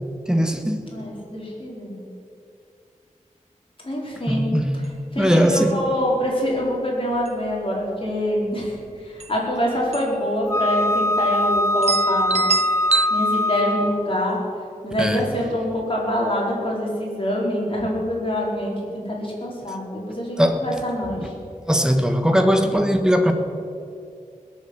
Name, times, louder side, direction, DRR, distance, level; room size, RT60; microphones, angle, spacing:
voice 1, 0.3-0.8 4.3-4.7 5.1-5.8 12.9-13.0 15.0-15.3 20.4-20.6 21.2-21.3 21.7-23.3, equal, 5° right, 6 dB, 1.3 m, -19 dB
voice 2, 0.9-2.0 3.8-4.5 5.1-12.4 13.1-14.4 14.8-18.7 19.0-21.3, equal, 40° left, -3 dB, 4.4 m, -25 dB
sound 1, 4.7-4.9 5.2-5.3 5.7-6.0 6.6-6.8 7.1-7.8 8.8-8.9 9.2-9.4 9.9-10.2 10.5-10.6 11.3-11.4 11.8-13.1, right 5 dB, 50° right, 0.4 m, -25 dB
Wind instrument woodwind instrument, 10.5-14.1, left 1 dB, 20° left, 0.5 m, -22 dB
20.5 x 7.3 x 7.8 m, 2.4 s
wide cardioid pair, 75°, 14 cm